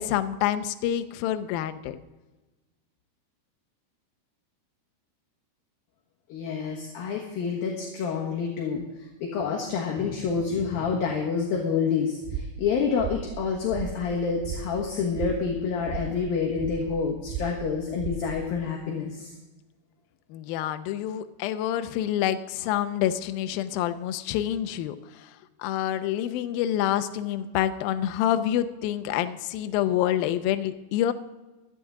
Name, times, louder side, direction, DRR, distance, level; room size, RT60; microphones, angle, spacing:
voice 1, 0.0-2.0 20.3-25.3 25.6-31.1, left 11 dB, 85° left, 9 dB, 2.1 m, -27 dB
voice 2, 6.3-8.8 9.2-19.3, left 5 dB, 65° left, -1 dB, 2.9 m, -28 dB
sound 1, 12.2-18.6, right 6 dB, 70° right, 3.1 m, -37 dB
17.0 x 12.5 x 3.7 m, 1.1 s
omnidirectional pair, 5.1 m